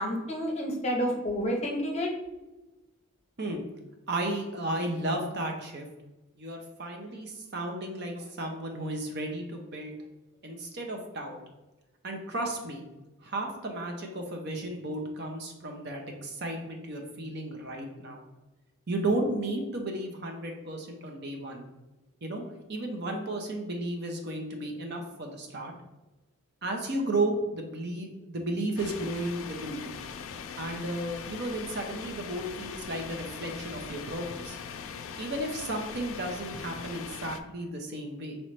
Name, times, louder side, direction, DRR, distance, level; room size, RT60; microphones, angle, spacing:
voice 1, 0.0-2.1, equal, 30° left, 0 dB, 0.8 m, -29 dB
voice 2, 4.1-5.9 6.4-9.9 10.4-11.4 12.0-12.8 13.2-18.2 18.9-21.7 22.2-22.4 22.7-25.7 26.6-29.9 30.6-34.6 35.2-38.4, right 1 dB, 50° right, 2 dB, 0.7 m, -33 dB
sound 1, 28.8-37.4, left 6 dB, 70° left, 0.3 m, -41 dB
5.5 x 3.0 x 3.1 m, 1.1 s
head